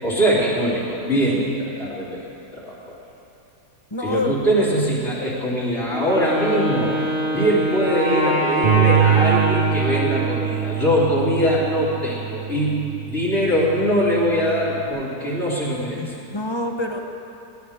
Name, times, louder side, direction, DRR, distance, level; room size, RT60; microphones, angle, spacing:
voice 1, 0.0-2.3 2.5-3.0 4.0-6.9 7.3-12.8 13.1-16.1, equal, 45° left, -8 dB, 3.6 m, -22 dB
voice 2, 3.9-4.3 16.0-17.0, left 2 dB, 20° left, 3 dB, 0.9 m, -26 dB
Wind instrument woodwind instrument, 5.9-10.8, equal, 5° right, 2.8 m, -24 dB
Bass guitar, 8.6-14.9, right 11 dB, 40° right, 1.4 m, -24 dB
21.0 x 17.0 x 3.6 m, 2.8 s
omnidirectional pair, 1.6 m